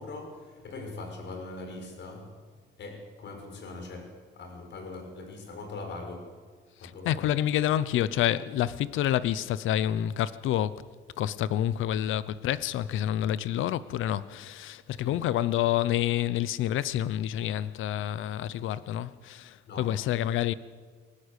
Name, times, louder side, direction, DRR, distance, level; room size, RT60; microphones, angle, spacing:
voice 1, 0.0-2.3 2.8-6.3 6.8-7.3 15.0-15.2 19.7-19.9, left 3 dB, 65° left, 5.7 m, -41 dB
voice 2, 6.8-10.8 11.2-20.5, left 12 dB, 85° left, 0.8 m, -28 dB
23.5 x 18.5 x 8.3 m
cardioid pair, 90°, 20 cm